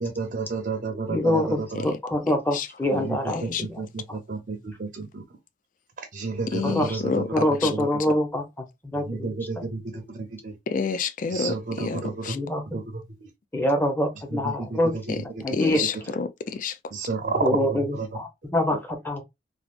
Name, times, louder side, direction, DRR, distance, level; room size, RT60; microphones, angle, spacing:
voice 1, 0.0-1.8 3.1-5.2 6.1-7.4 7.7-7.9 9.1-10.5 11.3-12.3 12.7-12.8 14.3-14.8 15.4-15.5 16.9-18.1, right 4 dB, 50° right, 0.6 m, -31 dB
voice 2, 1.1-3.8 4.1-4.2 6.6-7.0 7.3-9.6 12.3-12.6 13.5-14.9 15.4-16.2 17.4-19.2, left 1 dB, 10° left, 0.8 m, -26 dB
voice 3, 3.3-3.7 6.5-7.3 7.6-7.7 10.7-12.4 15.1-15.2 15.5-16.8, left 5 dB, 45° left, 0.4 m, -29 dB
3.4 x 2.4 x 2.4 m
head